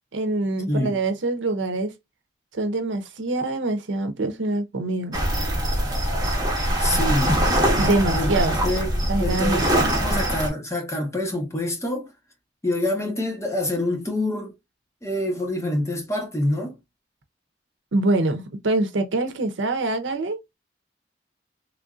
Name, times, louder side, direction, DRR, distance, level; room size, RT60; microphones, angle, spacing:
voice 1, 0.1-1.9 2.5-5.2 7.8-8.7 9.1-9.9 17.9-20.4, right 2 dB, 85° right, 0.7 m, -25 dB
voice 2, 0.7-1.0 6.8-7.4 8.1-9.6 10.0-12.1 12.6-14.5 15.0-16.8, left 1 dB, 15° left, 0.9 m, -26 dB
sound 1, 5.1-10.5, right 1 dB, 20° right, 1.0 m, -22 dB
3.4 x 2.5 x 2.4 m
head